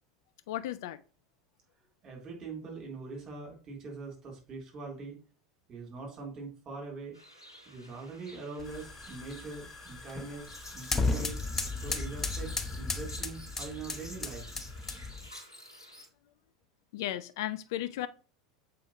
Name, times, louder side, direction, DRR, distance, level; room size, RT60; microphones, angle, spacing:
voice 1, 0.5-1.0 16.9-18.1, left 13 dB, 55° left, 0.3 m, -35 dB
voice 2, 2.0-5.2 5.7-7.2 7.6-11.4 11.8-14.5, right 3 dB, 30° right, 3.1 m, -43 dB
sound 1, 7.1-16.1, left 1 dB, 85° left, 1.8 m, -49 dB
sound 2, 8.6-15.3, left 3 dB, 15° left, 0.8 m, -35 dB
7.1 x 4.8 x 3.0 m
figure-of-eight pair, 80°, 2 cm